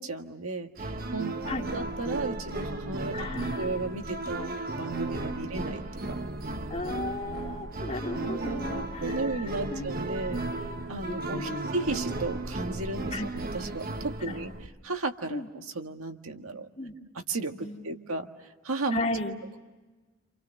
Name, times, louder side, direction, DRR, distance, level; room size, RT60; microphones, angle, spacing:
voice 1, 0.0-1.3 1.7-3.3 3.6-4.5 4.8-6.2 8.3-8.6 9.0-10.4 10.9-13.2 13.5-14.5 14.8-16.7 17.3-19.0, right 3 dB, 90° right, 5 dB, 1.7 m, -34 dB
sound 1, 0.8-14.7, right 2 dB, 45° right, 1.4 m, -35 dB
voice 2, 3.1-3.7 5.4-5.5 6.7-9.2 9.7-9.9 11.0-11.6 13.1-13.3 14.2-14.4 15.3-15.5 16.8-16.9 17.6-18.0 18.9-19.4, left 2 dB, 30° left, 1 dB, 2.4 m, -35 dB
28.0 x 28.0 x 6.5 m, 1.3 s
head